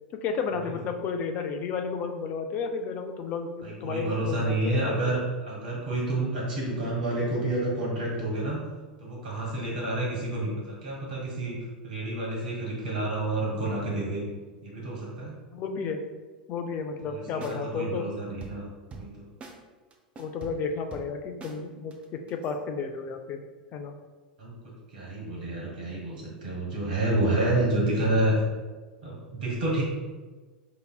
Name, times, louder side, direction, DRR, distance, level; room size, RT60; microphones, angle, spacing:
voice 1, 0.1-5.1 15.5-16.0 16.5-18.1 20.2-23.4 23.7-23.9, left 5 dB, 35° left, 5 dB, 0.4 m, -32 dB
voice 2, 3.6-8.6 9.0-11.5 11.8-14.2 14.6-15.4 17.0-18.7 18.9-19.1 24.4-24.5 24.9-28.4 29.0-29.8, right 2 dB, 65° right, -4 dB, 1.4 m, -29 dB
sound 1, 17.0-17.2 17.4-17.6 18.4-19.2 19.4-19.6 19.9-21.6 21.9-22.5, right 3 dB, 25° right, 0.5 m, -44 dB
5.1 x 2.9 x 2.3 m, 1.3 s
figure-of-eight pair, 85°, 5 cm